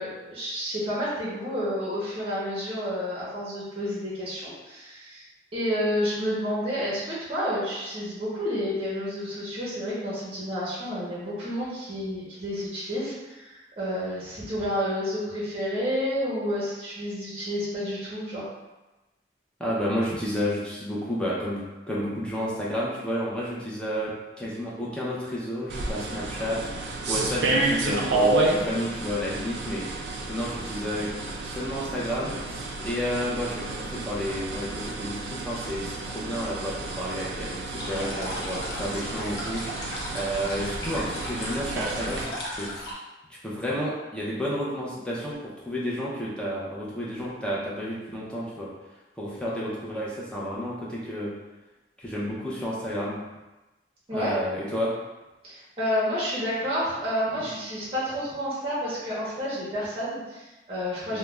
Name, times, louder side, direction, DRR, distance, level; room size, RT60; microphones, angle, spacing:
voice 1, 0.0-5.3 5.5-18.4 54.1-54.3 55.4-61.2, equal, 30° right, -7 dB, 0.8 m, -30 dB
voice 2, 19.6-26.6 27.1-31.1 31.4-39.6 40.1-42.7 43.4-48.7 49.2-51.3 52.0-53.2 54.1-54.9 61.1-61.2, equal, 5° left, -6 dB, 0.5 m, -31 dB
sound 1, 25.7-42.2, right 2 dB, 70° right, 0.4 m, -30 dB
sound 2, 37.8-42.9, left 1 dB, 60° left, 0.6 m, -36 dB
2.4 x 2.1 x 3.1 m, 1.1 s
head